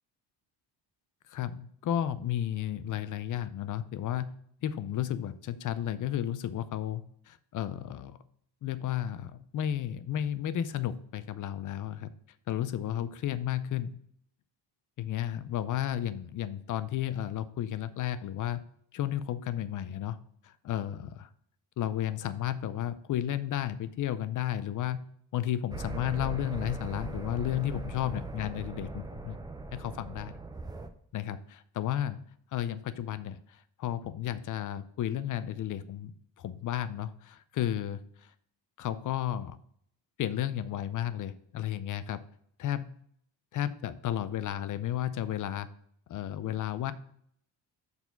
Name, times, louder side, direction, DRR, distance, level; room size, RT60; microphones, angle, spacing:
voice 1, 1.3-4.3 4.6-8.2 8.6-12.1 12.5-14.0 15.0-18.6 18.9-20.2 20.4-21.3 21.8-25.0 25.3-29.4 29.7-30.3 31.1-32.2 32.5-36.1 36.4-38.0 38.8-39.6 40.2-42.2 42.6-42.9 43.5-45.7 46.1-46.9, left 11 dB, 45° left, 14 dB, 0.5 m, -33 dB
sound 1, 25.7-30.9, right 3 dB, 10° right, 0.3 m, -40 dB
7.0 x 4.1 x 5.7 m, 0.67 s
cardioid pair, 150°, 45 cm